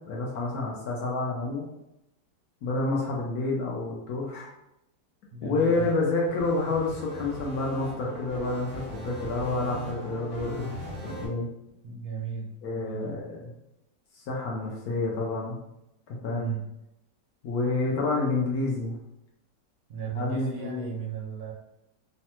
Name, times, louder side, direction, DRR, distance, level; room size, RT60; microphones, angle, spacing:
voice 1, 0.0-1.7 2.6-4.5 5.4-10.7 11.0-11.5 12.6-13.5 14.1-15.6 16.1-16.5 17.4-19.0 20.1-20.9, left 3 dB, 70° left, -3 dB, 1.0 m, -29 dB
voice 2, 5.3-5.9 11.8-13.2 16.3-16.7 19.9-21.5, right 5 dB, 70° right, -1 dB, 1.0 m, -35 dB
sound 1, 5.6-11.3, right 1 dB, 45° right, 0.4 m, -39 dB
3.2 x 2.2 x 2.9 m, 0.86 s
omnidirectional pair, 1.9 m